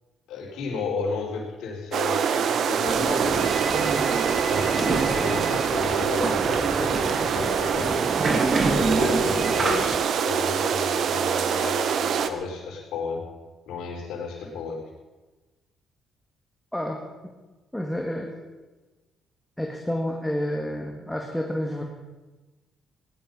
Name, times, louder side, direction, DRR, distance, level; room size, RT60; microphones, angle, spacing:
voice 1, 0.3-4.0 4.5-8.0 8.7-13.3 13.7-14.8, left 3 dB, 85° left, -1 dB, 4.7 m, -33 dB
sound 1, 1.9-12.3, right 7 dB, 65° right, 1.1 m, -25 dB
sound 2, 2.8-10.0, right 3 dB, 40° right, 2.4 m, -27 dB
voice 2, 17.7-18.3 19.6-21.8, left 1 dB, 5° left, 1 dB, 2.0 m, -29 dB
18.0 x 11.5 x 5.5 m, 1.2 s
cardioid pair, 90°, 0 cm